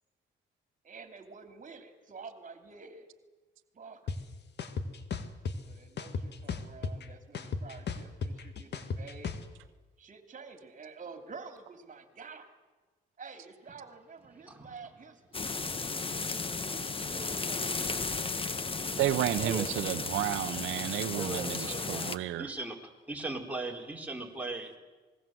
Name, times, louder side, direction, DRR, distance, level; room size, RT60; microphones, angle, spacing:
voice 1, 0.8-3.1 3.7-4.2 5.7-9.3 10.0-12.6 13.2-16.3 16.7-18.3 19.4-19.6, right 4 dB, 40° right, 7 dB, 3.1 m, -49 dB
sound 1, 4.1-4.2 4.6-5.6 6.0-7.0 7.3-9.4, left 5 dB, 60° left, 2.0 m, -34 dB
voice 2, 14.5-15.0 18.5-18.7 19.3-19.7 20.5-20.6 21.1-24.8, right 2 dB, 5° right, 0 dB, 4.2 m, -39 dB
sound 2, 15.3-22.2, left 4 dB, 25° left, 1.3 m, -34 dB
voice 3, 19.0-22.5, right 13 dB, 85° right, 10 dB, 0.8 m, -31 dB
27.0 x 20.0 x 7.8 m, 1.3 s
cardioid pair, 90°, 20 cm